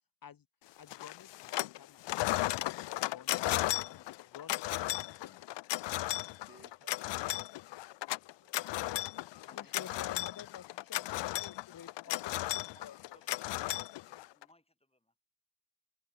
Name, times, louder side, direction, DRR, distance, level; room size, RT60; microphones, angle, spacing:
voice 1, 0.8-2.1 2.5-5.5 9.5-13.2, left 8 dB, 45° left, 1.2 m, -52 dB
sound 1, 0.9-1.8 2.0-14.4, left 17 dB, 60° left, 0.5 m, -35 dB
voice 2, 6.4-8.8, right 3 dB, 25° right, 5.5 m, -65 dB
voice 3, 9.4-10.1 12.1-15.2, left 1 dB, 10° left, 7.4 m, -64 dB
cardioid pair, 75°, 49 cm